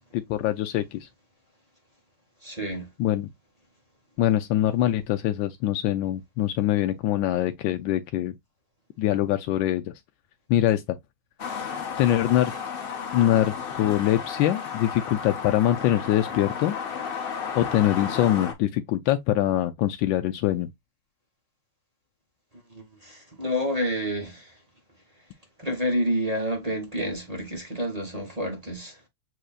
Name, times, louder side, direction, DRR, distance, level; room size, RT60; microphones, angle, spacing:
voice 1, 0.1-1.1 3.0-3.3 4.2-8.3 9.0-9.9 10.5-11.0 12.0-12.5 13.1-16.7 17.5-20.7, left 13 dB, 80° left, 1.3 m, -23 dB
voice 2, 2.4-2.9 22.7-24.6 25.6-29.0, equal, 25° right, 0.9 m, -29 dB
sound 1, 11.4-18.5, left 6 dB, 45° left, 0.7 m, -33 dB
7.7 x 2.8 x 2.4 m
omnidirectional pair, 2.1 m